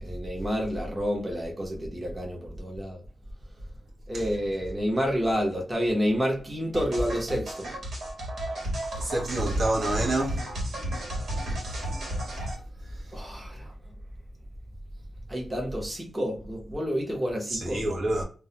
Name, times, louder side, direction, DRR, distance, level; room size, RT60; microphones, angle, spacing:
voice 1, 0.0-3.0 4.1-7.7 13.1-13.7 15.3-17.8, equal, 15° right, 0.8 m, -29 dB
sound 1, 6.7-12.5, right 1 dB, 85° right, 1.0 m, -33 dB
voice 2, 9.0-10.4 17.5-18.2, right 1 dB, 55° right, 0.8 m, -27 dB
2.3 x 2.1 x 2.8 m
wide cardioid pair, 125°, 0 cm